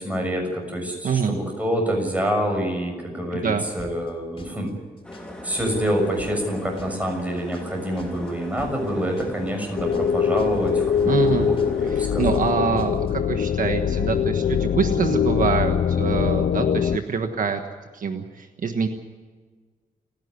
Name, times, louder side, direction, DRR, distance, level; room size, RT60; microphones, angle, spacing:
voice 1, 0.0-4.7 5.4-12.4, equal, 10° right, 2 dB, 6.8 m, -27 dB
voice 2, 1.0-1.4 3.3-3.6 11.1-11.5 11.9-17.6 17.9-18.9, right 6 dB, 60° right, 6 dB, 1.4 m, -25 dB
sound 1, 3.8-4.1 4.4-4.7 5.0-5.3 5.6-5.9 6.2-6.5 6.8-7.1 7.4-7.7 8.0-8.3 8.6-8.9 9.2-9.5 9.8-10.1 10.4-10.7 11.0-11.3 11.6-11.9 12.2-12.5 12.8-13.1, left 2 dB, 35° left, 5.3 m, -43 dB
sound 2, 5.0-12.3, left 1 dB, 5° left, 3.2 m, -39 dB
sound 3, 9.8-17.0, left 8 dB, 60° left, 0.6 m, -23 dB
30.0 x 10.5 x 9.7 m, 1.5 s
wide cardioid pair, 125°, 15 cm